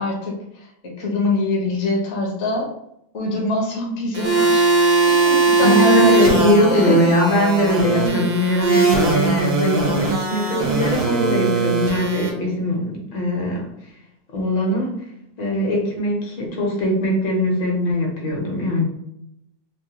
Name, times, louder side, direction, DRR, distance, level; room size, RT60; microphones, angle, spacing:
voice 1, 0.0-2.7 3.1-4.7 5.1-7.0 7.9-8.3 11.1-11.4, left 1 dB, 55° left, -2 dB, 0.8 m, -24 dB
sound 1, 4.1-12.3, right 3 dB, 70° right, 1.3 m, -19 dB
voice 2, 5.6-13.7 14.3-14.9 15.4-18.9, equal, 75° left, -1 dB, 1.5 m, -21 dB
3.6 x 2.2 x 2.7 m, 0.79 s
omnidirectional pair, 2.1 m